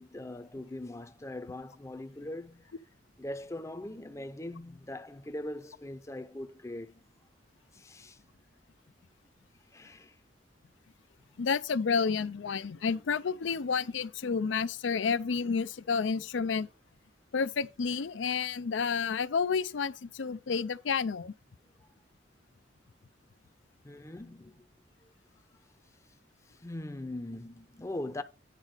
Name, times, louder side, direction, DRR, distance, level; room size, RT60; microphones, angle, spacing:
voice 1, 0.0-2.7 3.2-7.0 7.7-8.2 9.7-10.1 23.8-24.7 26.5-28.2, left 1 dB, 15° left, 0.6 m, -41 dB
voice 2, 11.4-16.7 17.3-21.3, left 5 dB, 90° left, 0.5 m, -30 dB
9.8 x 4.0 x 6.5 m
head